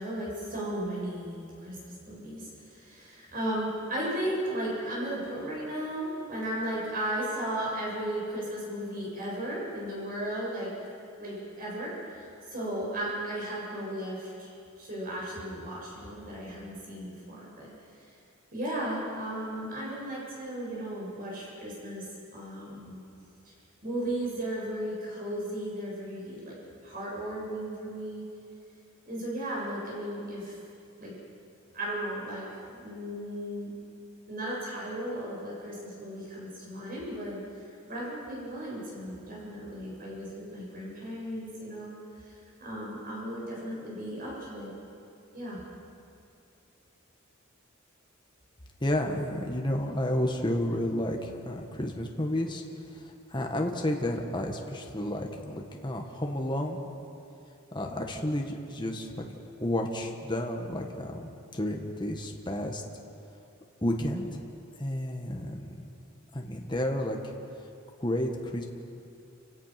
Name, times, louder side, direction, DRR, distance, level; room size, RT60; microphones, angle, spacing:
voice 1, 0.0-1.8 2.1-10.7 11.2-14.5 14.8-17.7 18.5-22.1 22.3-23.0 23.8-26.6 26.8-28.2 29.1-30.6 31.0-31.1 31.7-33.7 34.3-41.9 42.2-42.3 42.6-44.7 45.3-45.6, right 1 dB, 45° right, -5 dB, 7.6 m, -35 dB
voice 2, 48.8-52.6 53.3-56.8 57.7-59.2 59.6-62.8 63.8-64.4 64.8-65.8 66.3-67.2 68.0-68.6, left 1 dB, 25° left, 2 dB, 1.7 m, -31 dB
29.0 x 17.5 x 6.0 m, 2.7 s
head